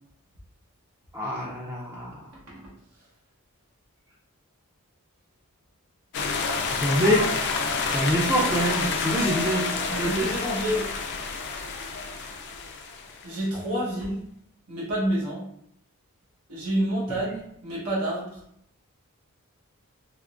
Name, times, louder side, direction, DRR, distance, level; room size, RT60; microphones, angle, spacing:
voice 1, 1.1-2.2 6.8-7.5 7.9-10.3, equal, 10° right, -6 dB, 0.4 m, -25 dB
sound 1, 6.1-13.4, left 4 dB, 50° left, 0.4 m, -29 dB
voice 2, 9.1-10.9 13.2-14.2 14.7-15.4 16.5-18.4, right 1 dB, 80° right, -5 dB, 1.1 m, -29 dB
3.5 x 2.9 x 2.4 m, 0.70 s
head